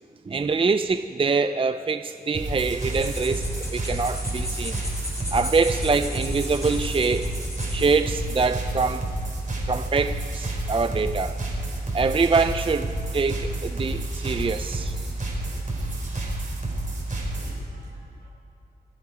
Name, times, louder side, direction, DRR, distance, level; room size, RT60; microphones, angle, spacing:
voice 1, 0.3-4.8 5.3-7.3 7.7-9.0 9.7-11.3 11.9-15.0, right 4 dB, 30° right, 10 dB, 0.5 m, -24 dB
sound 1, 2.3-17.6, right 1 dB, 50° right, 4.0 m, -30 dB
sound 2, 2.8-8.0, left 1 dB, 20° left, 4.5 m, -37 dB
voice 2, 15.6-16.4 17.4-18.3, right 2 dB, 70° right, -2 dB, 3.4 m, -54 dB
25.0 x 9.1 x 5.1 m, 2.3 s
cardioid pair, 55°, 17 cm